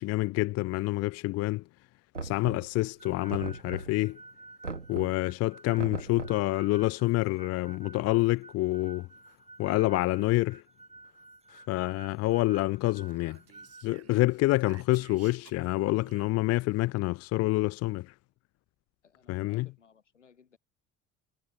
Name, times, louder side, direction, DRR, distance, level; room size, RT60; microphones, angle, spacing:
voice 1, 0.0-1.6 2.2-4.2 4.9-9.1 9.6-10.6 11.7-13.4 13.8-18.1 19.3-19.7, left 19 dB, 45° left, 0.5 m, -27 dB
Knock, 2.1-2.9 3.3-4.1 4.6-5.3 5.8-6.5, right 4 dB, 90° right, 1.6 m, -39 dB
sound 1, 3.0-13.8, right 3 dB, 15° right, 4.3 m, -52 dB
Speech, 12.9-16.8, right 9 dB, 45° right, 3.5 m, -56 dB
voice 2, 19.0-20.6, left 6 dB, 80° left, 5.4 m, -60 dB
figure-of-eight pair, 50°, 36 cm